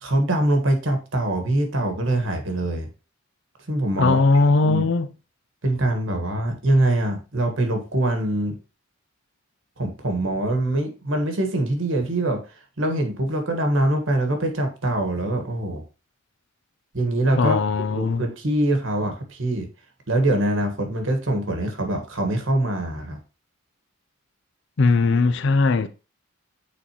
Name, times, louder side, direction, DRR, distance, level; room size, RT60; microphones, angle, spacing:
voice 1, 0.0-2.9 3.7-4.2 4.6-4.9 5.6-8.6 9.8-12.4 12.8-15.8 16.9-17.6 17.9-19.7 20.1-23.2, right 1 dB, 65° right, 1.4 m, -23 dB
voice 2, 4.0-5.1 17.3-18.2 24.8-25.9, left 3 dB, 60° left, 0.5 m, -19 dB
8.5 x 4.0 x 2.9 m
head